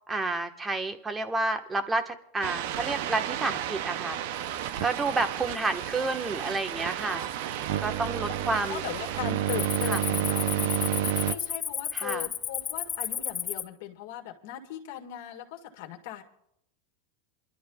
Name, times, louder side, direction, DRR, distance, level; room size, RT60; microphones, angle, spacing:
voice 1, 0.1-4.2 4.8-7.2 7.8-8.8 9.8-10.0 11.9-12.3, right 3 dB, 15° right, 7 dB, 1.3 m, -30 dB
sound 1, 2.4-11.3, right 12 dB, 65° right, 0.6 m, -31 dB
voice 2, 3.6-4.4 4.7-5.2 7.0-7.6 8.4-16.2, left 12 dB, 70° left, 3 dB, 1.8 m, -40 dB
Cricket, 4.7-5.1 5.6-6.0 6.6-6.7 7.3-7.9 8.2-8.4 8.8-13.6, left 8 dB, 30° left, 0.9 m, -33 dB
28.5 x 12.0 x 2.3 m, 0.72 s
supercardioid pair, 115°, 0 cm